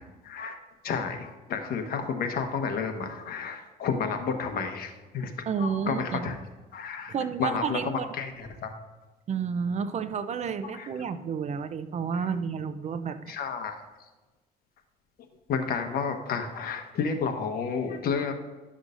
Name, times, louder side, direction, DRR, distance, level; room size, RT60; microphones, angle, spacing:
voice 1, 0.2-0.5 0.8-6.3 6.7-7.1 7.4-8.7 10.6-10.9 13.3-13.8 15.5-18.3, left 5 dB, 60° left, 5 dB, 1.2 m, -31 dB
voice 2, 5.5-6.3 7.1-8.1 9.3-13.3, right 6 dB, 40° right, 11 dB, 0.6 m, -31 dB
12.0 x 6.3 x 2.6 m, 1.2 s
cardioid pair, 110°, 17 cm